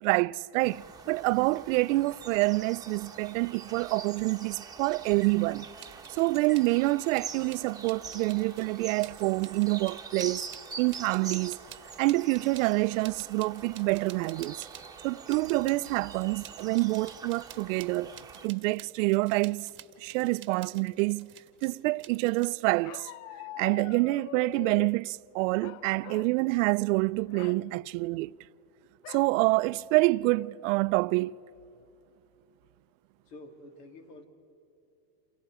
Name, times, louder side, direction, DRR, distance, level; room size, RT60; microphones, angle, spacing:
voice 1, 0.0-5.7 6.1-10.4 10.8-11.6 12.0-14.7 15.0-18.1 18.4-19.7 20.0-21.3 21.6-23.1 23.6-28.4 29.1-31.4, right 22 dB, 55° right, 0.5 m, -27 dB
sound 1, 0.6-18.5, right 5 dB, 10° right, 1.2 m, -44 dB
sound 2, 5.8-6.7 7.1-15.0 15.3-22.5, right 11 dB, 25° right, 1.2 m, -51 dB
Bark, 22.8-25.0 25.6-26.4 26.7-26.9 27.3-27.6 29.0-29.3 29.9-30.0 30.3-30.7, left 14 dB, 55° left, 0.7 m, -44 dB
voice 2, 33.2-34.2, left 2 dB, 75° left, 3.1 m, -48 dB
29.0 x 28.5 x 4.9 m
supercardioid pair, 130°, 49 cm